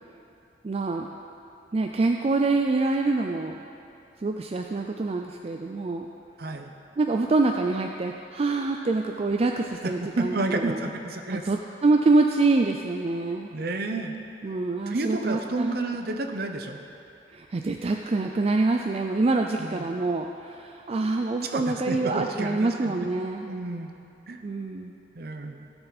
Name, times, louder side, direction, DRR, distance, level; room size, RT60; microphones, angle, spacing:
voice 1, 0.6-1.1 1.7-3.6 4.2-6.1 7.0-10.8 11.3-13.5 14.4-15.8 17.3-23.5 24.4-25.0, right 3 dB, 35° right, 3 dB, 0.4 m, -25 dB
voice 2, 6.4-6.7 9.8-11.4 13.5-14.2 14.5-14.6 14.9-16.8 19.6-19.9 21.4-23.0 23.5-23.9 24.3-24.4 25.1-25.6, right 2 dB, 60° right, 5 dB, 0.8 m, -31 dB
16.5 x 7.0 x 4.1 m, 2.9 s
head